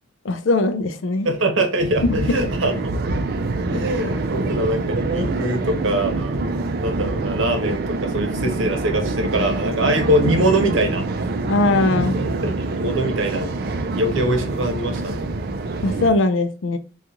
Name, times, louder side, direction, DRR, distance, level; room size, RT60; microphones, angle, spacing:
voice 1, 0.2-1.3 2.0-2.2 11.4-12.2 15.8-16.8, left 2 dB, 75° left, 9 dB, 0.5 m, -20 dB
voice 2, 1.2-2.9 3.7-6.4 6.7-11.1 12.4-15.3, right 1 dB, 85° right, 5 dB, 0.9 m, -23 dB
sound 1, 1.8-16.1, right 3 dB, 50° right, 0.4 m, -25 dB
2.9 x 2.4 x 3.6 m, 0.40 s
head